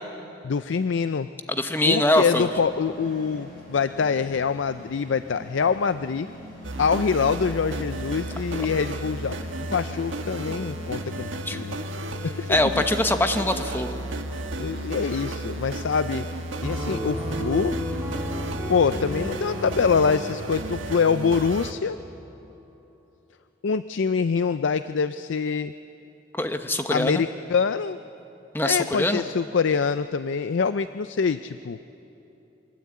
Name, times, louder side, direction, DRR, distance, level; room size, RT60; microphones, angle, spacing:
voice 1, 0.4-1.3 1.8-6.3 6.8-9.4 9.7-11.8 12.2-12.8 14.6-16.3 16.6-17.8 18.7-22.0 23.6-25.7 26.9-28.0 28.6-31.8, left 5 dB, 75° left, 12 dB, 0.4 m, -25 dB
voice 2, 1.5-2.5 11.5-11.6 12.5-14.0 26.3-27.2 28.5-29.2, left 1 dB, 10° left, 7 dB, 1.0 m, -23 dB
sound 1, 2.3-21.1, left 1 dB, 45° left, 8.0 m, -45 dB
sound 2, 6.6-21.7, right 1 dB, 80° right, 1.4 m, -33 dB
Piano, 16.6-22.2, equal, 10° right, 3.7 m, -34 dB
23.5 x 21.0 x 8.6 m, 3.0 s
head